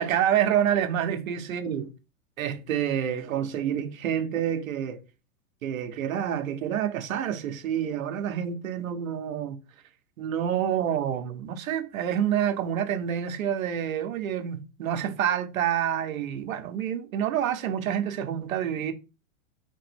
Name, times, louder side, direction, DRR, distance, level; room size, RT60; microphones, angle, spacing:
voice 1, 0.0-1.9 2.4-5.0 5.6-9.6 10.2-18.9, right 9 dB, 85° right, 1.1 m, -28 dB
4.4 x 3.0 x 3.4 m
hypercardioid pair, 145°, 40 cm